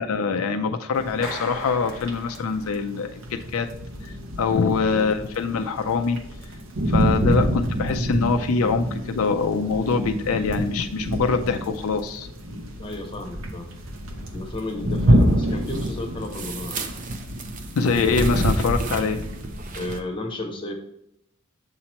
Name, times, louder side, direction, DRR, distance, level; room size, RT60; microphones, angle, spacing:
voice 1, 0.0-3.7 4.0-6.2 6.9-12.3 17.7-19.2, left 4 dB, 75° left, 6 dB, 0.4 m, -24 dB
sound 1, 0.9-20.0, equal, 65° right, 0.8 m, -28 dB
Clapping, 1.2-3.0, left 1 dB, ahead, 1.4 m, -38 dB
voice 2, 12.8-13.7 14.3-16.8 19.7-20.7, left 1 dB, 25° left, 2 dB, 0.9 m, -33 dB
sound 2, 13.5-20.0, right 1 dB, 35° right, 0.5 m, -30 dB
7.6 x 2.9 x 4.3 m, 0.78 s
head